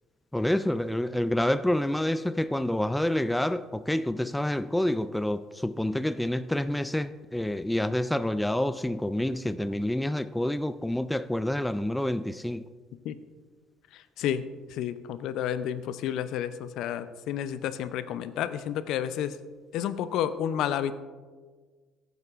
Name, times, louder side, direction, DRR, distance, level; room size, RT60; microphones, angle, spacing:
voice 1, 0.3-12.6, left 1 dB, 5° left, 0.4 m, -28 dB
voice 2, 13.9-14.4 14.7-19.4 19.7-20.9, left 10 dB, 70° left, 0.5 m, -31 dB
15.0 x 8.0 x 2.5 m
hypercardioid pair, 60°, 0 cm